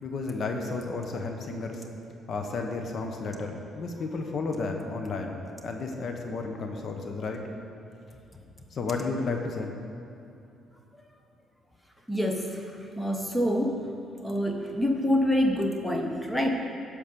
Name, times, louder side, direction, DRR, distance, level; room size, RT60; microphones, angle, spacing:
voice 1, 0.0-1.8 2.3-7.4 8.7-9.7, left 3 dB, 55° left, 3 dB, 1.0 m, -32 dB
voice 2, 12.1-12.7 13.0-13.9 14.2-16.5, equal, 10° left, 2 dB, 1.0 m, -26 dB
11.0 x 5.2 x 6.8 m, 2.7 s
cardioid pair, 90°, 0 cm